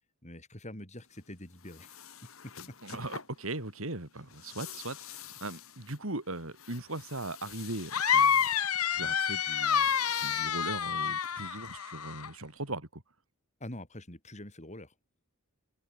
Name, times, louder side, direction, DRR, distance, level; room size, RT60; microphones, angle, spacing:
voice 1, 0.2-2.0 2.2-3.0 13.6-14.9, left 1 dB, 30° left, 7.4 m, -45 dB
sound 1, 1.0-11.7, left 9 dB, 70° left, 3.0 m, -50 dB
voice 2, 2.8-8.4 8.9-9.9 10.2-13.0, right 2 dB, 65° right, 3.6 m, -39 dB
sound 2, 7.9-12.3, left 8 dB, 90° left, 1.5 m, -28 dB
head